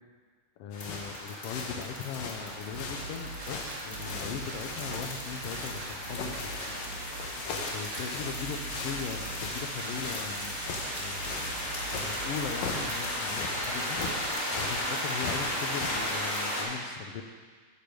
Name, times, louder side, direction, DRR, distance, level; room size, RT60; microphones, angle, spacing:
voice 1, 0.6-6.8 7.7-8.6 8.8-10.6 11.0-11.6 12.0-14.0 14.5-17.2, left 6 dB, 90° left, 5 dB, 1.3 m, -39 dB
sound 1, 0.7-16.4, left 4 dB, 70° left, 2.1 m, -40 dB
sound 2, 0.7-16.6, left 1 dB, 25° left, 2.0 m, -36 dB
sound 3, 2.5-14.3, right 3 dB, 75° right, 1.0 m, -43 dB
9.5 x 6.8 x 5.0 m, 1.5 s
omnidirectional pair, 3.5 m